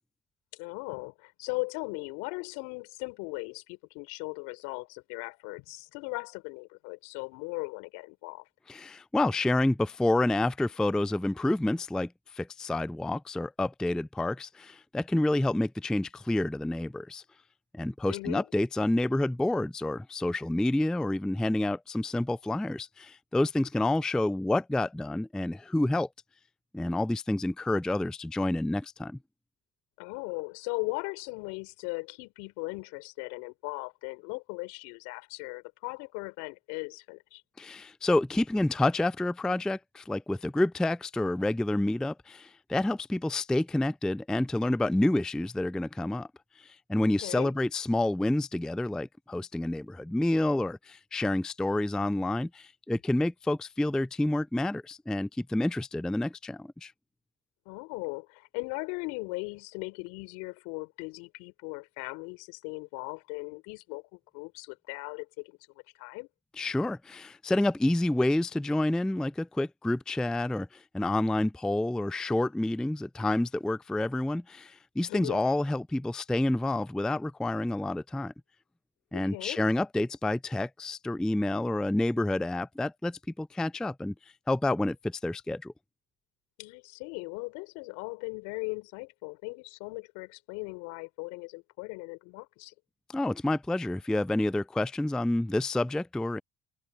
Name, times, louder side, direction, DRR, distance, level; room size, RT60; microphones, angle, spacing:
voice 1, 0.5-8.5 18.1-18.5 30.0-37.4 47.2-47.5 57.7-65.6 66.0-66.3 75.1-75.4 79.1-79.6 86.6-92.7, left 29 dB, 75° left, 4.1 m, -38 dB
voice 2, 8.7-17.2 17.7-26.1 26.7-29.2 37.6-46.3 46.6-56.9 66.6-78.3 79.1-84.1 84.5-85.7 93.1-96.4, left 1 dB, ahead, 0.4 m, -29 dB
hypercardioid pair, 55°, 30 cm